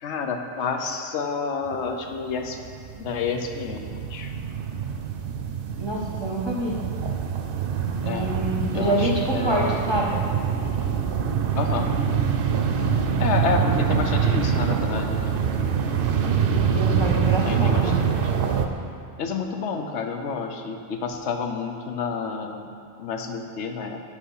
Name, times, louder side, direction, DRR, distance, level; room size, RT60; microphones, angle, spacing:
voice 1, 0.0-2.6 3.0-4.3 8.0-8.4 8.7-9.8 11.6-11.9 13.2-15.4 17.4-18.3 19.2-22.7 23.0-24.0, left 5 dB, 85° left, 5 dB, 0.9 m, -29 dB
sound 1, 1.7-1.8 2.1-18.7, right 7 dB, 60° right, 0.7 m, -25 dB
voice 2, 5.8-6.8 8.0-10.3 16.6-18.0, right 1 dB, 25° right, -2 dB, 0.8 m, -26 dB
10.5 x 3.6 x 5.4 m, 2.4 s
omnidirectional pair, 1.2 m